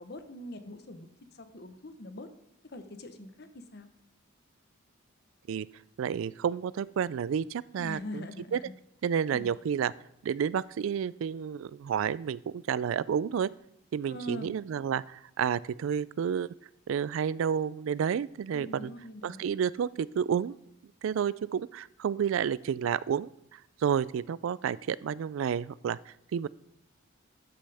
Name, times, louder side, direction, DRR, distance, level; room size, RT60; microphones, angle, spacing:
voice 1, 0.0-2.3 2.7-3.9 7.8-8.7 9.3-9.5 14.0-14.5 18.5-19.4, left 1 dB, 50° left, 9 dB, 1.0 m, -43 dB
voice 2, 6.0-8.3 8.5-8.6 9.0-9.9 10.2-13.5 13.9-16.5 16.9-18.9 19.2-20.6 21.0-26.5, right 7 dB, 80° right, 21 dB, 0.3 m, -30 dB
13.0 x 8.7 x 3.4 m, 0.81 s
head